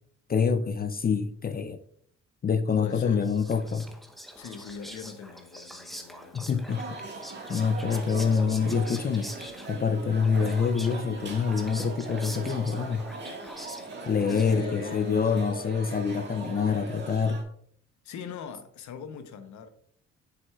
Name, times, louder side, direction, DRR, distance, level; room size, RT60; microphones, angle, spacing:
voice 1, 0.3-1.8 2.4-3.8 6.3-6.9 7.5-9.3 9.7-13.1 14.0-17.4, left 6 dB, 30° left, 0.5 m, -26 dB
voice 2, 2.8-3.3 4.4-6.5 14.3-15.4 18.0-19.7, left 6 dB, 70° left, 0.9 m, -40 dB
Whispering, 2.9-14.9, equal, ahead, 0.8 m, -45 dB
sound 1, 6.7-17.4, right 3 dB, 35° right, 1.7 m, -40 dB
7.4 x 6.0 x 2.3 m
cardioid pair, 90°, 30 cm